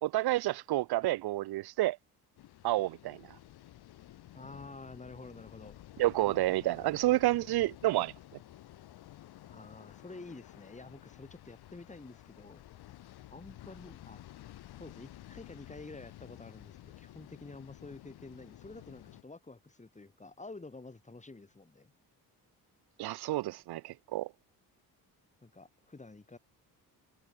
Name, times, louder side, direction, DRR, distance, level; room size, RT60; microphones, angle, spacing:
voice 1, 0.0-2.0 2.6-3.4 6.0-8.1 23.0-24.3, right 16 dB, 80° right, 0.8 m, -29 dB
sound 1, 2.4-19.2, left 14 dB, 80° left, 2.8 m, -52 dB
voice 2, 4.3-5.8 9.5-12.6 13.3-14.2 14.8-21.9 25.4-26.4, left 3 dB, 20° left, 6.8 m, -49 dB
cardioid pair, 100°, 38 cm